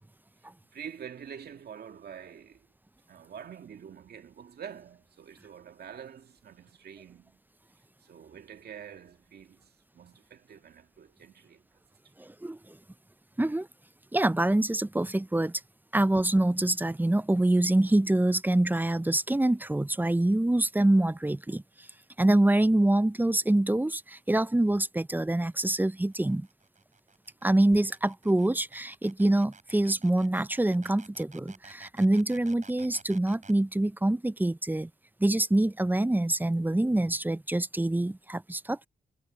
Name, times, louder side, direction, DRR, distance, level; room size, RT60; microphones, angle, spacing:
voice 1, 0.7-2.7 3.1-7.4 8.0-11.6, right 8 dB, 70° right, 2.2 m, -46 dB
voice 2, 12.2-12.8 13.4-13.7 14.1-15.6 15.9-21.9 22.2-26.5 27.4-34.9 35.2-38.9, right 1 dB, 10° right, 0.6 m, -25 dB
sound 1, 24.5-33.6, right 4 dB, 45° right, 7.3 m, -53 dB
supercardioid pair, 40°, 17 cm